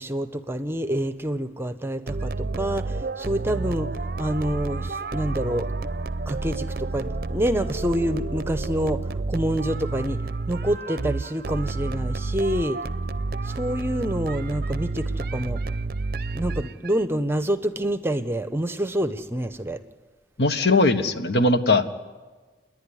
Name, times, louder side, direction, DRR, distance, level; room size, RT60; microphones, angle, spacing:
voice 1, 0.0-3.9 4.2-5.7 6.3-10.2 10.5-12.8 13.4-15.6 16.3-19.8, right 1 dB, 15° right, 10 dB, 0.7 m, -27 dB
sound 1, 2.1-17.0, right 3 dB, 55° right, 0.6 m, -30 dB
voice 2, 20.4-21.9, left 2 dB, 70° left, 8 dB, 1.3 m, -20 dB
29.5 x 11.0 x 9.8 m, 1.4 s
head